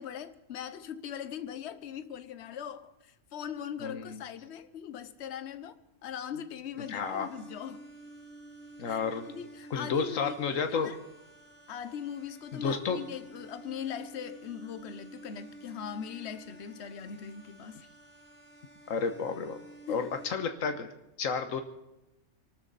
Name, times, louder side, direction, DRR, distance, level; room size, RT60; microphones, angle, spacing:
voice 1, 0.0-5.8 6.0-7.8 8.9-11.0 11.7-17.8 19.9-20.0, left 8 dB, 60° left, 1.1 m, -40 dB
voice 2, 3.8-4.2 6.9-7.3 8.8-9.3 9.7-10.9 12.5-13.0 18.9-19.6 19.9-20.9 21.2-21.6, left 5 dB, 85° left, 1.5 m, -31 dB
sound 1, 6.8-20.3, right 2 dB, 50° right, 4.6 m, -51 dB
24.5 x 13.0 x 4.1 m
omnidirectional pair, 1.3 m